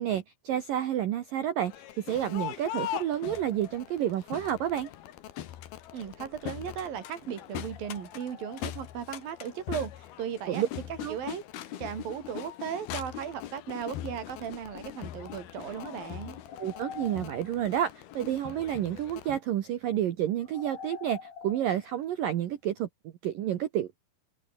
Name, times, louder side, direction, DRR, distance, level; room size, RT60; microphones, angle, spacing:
voice 1, 0.0-4.9 10.5-10.7 11.0-11.2 16.6-21.2 21.4-24.1, right 11 dB, 75° right, 2.0 m, -30 dB
Crowd, 1.6-19.4, left 12 dB, 60° left, 2.9 m, -41 dB
sound 1, 3.2-4.5 5.6-6.9 7.6-9.2 9.6-9.7 11.0-11.2 11.6-11.7 11.9-12.0 12.5-12.9 13.4-13.5 13.8-14.1 15.0-15.1 15.6-18.0 20.4-22.4, left 6 dB, 45° left, 4.6 m, -48 dB
voice 2, 5.9-10.6 10.9-11.4 11.8-16.4, right 8 dB, 50° right, 4.1 m, -37 dB
omnidirectional pair, 5.9 m